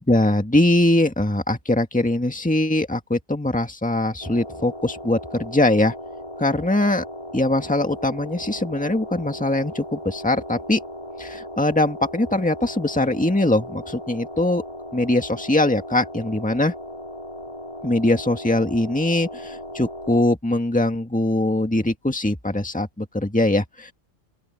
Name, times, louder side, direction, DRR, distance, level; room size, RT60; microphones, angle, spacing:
voice 1, 0.1-5.9 6.4-7.0 7.3-10.8 11.2-14.6 14.9-16.7 17.8-23.9, left 1 dB, 5° left, 1.8 m, -22 dB
sound 1, 4.2-20.2, left 1 dB, 25° left, 5.3 m, -37 dB
open air
omnidirectional pair, 1.3 m